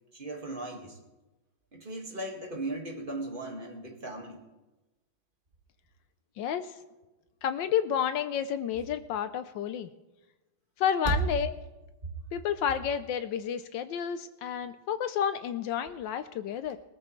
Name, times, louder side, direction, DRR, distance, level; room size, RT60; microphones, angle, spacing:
voice 1, 0.1-1.0 1.7-4.4 11.1-11.2, right 2 dB, 25° right, 1 dB, 1.8 m, -36 dB
voice 2, 6.4-6.7 7.4-9.9 10.8-11.5 12.3-16.8, left 9 dB, 75° left, 12 dB, 1.2 m, -30 dB
20.0 x 13.5 x 3.2 m, 1.1 s
omnidirectional pair, 2.3 m